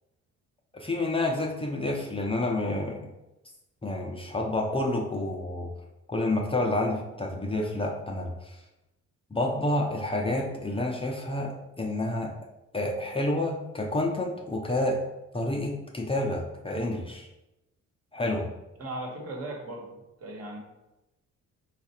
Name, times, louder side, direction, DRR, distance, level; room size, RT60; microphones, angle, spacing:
voice 1, 0.7-3.1 3.8-5.7 6.1-8.6 9.3-12.3 12.7-15.0 15.3-17.3 18.1-18.5, left 1 dB, 20° left, 0 dB, 0.6 m, -29 dB
voice 2, 18.8-20.6, right 1 dB, 55° right, 0 dB, 1.3 m, -38 dB
4.5 x 2.4 x 4.2 m, 0.97 s
cardioid pair, 90°, 30 cm